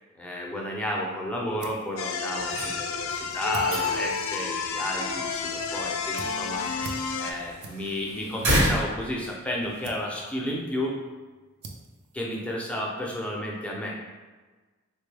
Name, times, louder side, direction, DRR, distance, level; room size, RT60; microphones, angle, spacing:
voice 1, 0.2-6.7 7.2-11.0 12.1-14.0, left 1 dB, 5° left, -3 dB, 0.5 m, -32 dB
sound 1, 1.0-13.1, right 3 dB, 50° right, 0.4 m, -49 dB
sound 2, 2.0-7.3, left 5 dB, 70° left, 0.4 m, -30 dB
sound 3, 2.4-9.9, equal, 75° right, 1.0 m, -32 dB
3.5 x 2.2 x 3.3 m, 1.3 s
head